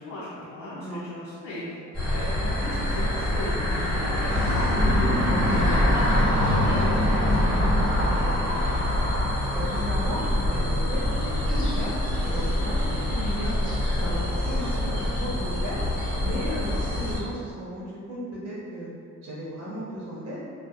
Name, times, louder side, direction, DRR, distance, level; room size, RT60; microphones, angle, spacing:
voice 1, 0.0-1.8 2.1-8.8, left 1 dB, 60° left, -8 dB, 0.6 m, -39 dB
sound 1, 1.9-17.2, left 1 dB, ahead, 1.4 m, -24 dB
voice 2, 9.5-11.9 12.2-13.5 14.0-15.8 16.2-18.9 19.2-20.4, equal, 65° right, -6 dB, 1.0 m, -35 dB
2.7 x 2.1 x 2.3 m, 2.4 s
cardioid pair, 90°, 30 cm